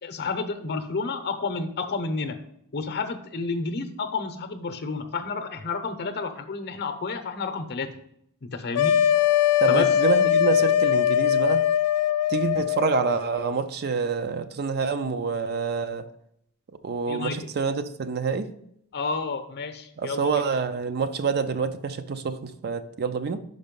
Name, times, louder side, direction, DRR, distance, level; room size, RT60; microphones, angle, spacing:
voice 1, 0.0-2.4 2.7-7.9 8.4-8.9 9.7-9.9 17.1-17.4 18.9-20.4, left 4 dB, 50° left, 0.7 m, -30 dB
sound 1, 8.7-13.2, left 10 dB, 85° left, 0.3 m, -21 dB
voice 2, 9.6-11.6 12.3-16.0 16.8-18.5 20.0-23.4, right 5 dB, 45° right, 0.5 m, -27 dB
5.4 x 5.3 x 5.2 m
head